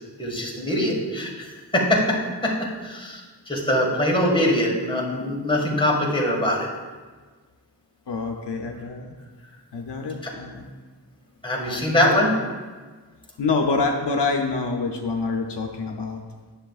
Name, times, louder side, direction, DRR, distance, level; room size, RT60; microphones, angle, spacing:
voice 1, 0.2-2.2 2.4-6.7 10.2-10.3 11.4-12.3, left 1 dB, 10° left, -3 dB, 1.8 m, -23 dB
voice 2, 8.1-9.1 9.7-10.6 11.6-12.2 13.4-16.2, left 3 dB, 75° left, 2 dB, 0.8 m, -26 dB
10.0 x 7.0 x 2.4 m, 1.4 s
wide cardioid pair, 65°, 42 cm